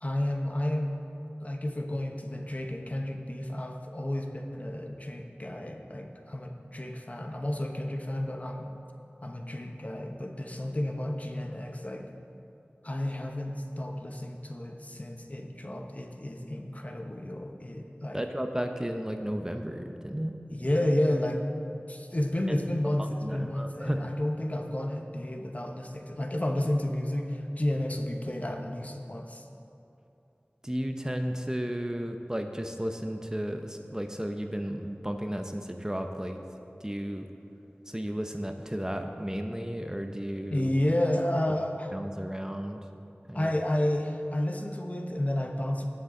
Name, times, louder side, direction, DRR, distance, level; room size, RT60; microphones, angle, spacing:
voice 1, 0.0-1.0 1.4-8.7 9.2-12.1 12.8-18.2 20.5-21.5 21.9-29.4 40.5-41.9 43.3-45.9, left 1 dB, 40° left, 3 dB, 0.9 m, -31 dB
voice 2, 18.1-20.3 23.0-24.0 30.6-36.4 36.8-37.3 37.9-40.7 41.9-42.8 43.3-43.5, equal, 15° right, 5 dB, 0.7 m, -33 dB
18.5 x 6.8 x 3.8 m, 2.8 s
wide cardioid pair, 45°, 4 cm